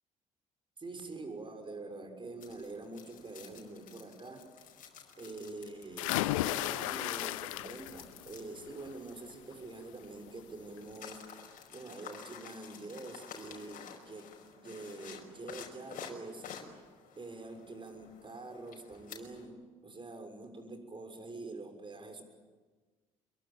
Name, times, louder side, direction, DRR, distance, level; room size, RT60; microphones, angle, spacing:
voice 1, 0.8-4.5 5.2-11.4 11.7-16.5 17.2-22.2, right 2 dB, 30° right, 6 dB, 6.3 m, -46 dB
sound 1, 2.4-19.5, left 7 dB, 55° left, 5.5 m, -52 dB
sound 2, 6.0-8.1 8.5-8.9 10.3-10.4 10.8-10.9, left 16 dB, 80° left, 0.7 m, -34 dB
27.0 x 23.0 x 8.9 m, 1.4 s
hypercardioid pair, 55°, 17 cm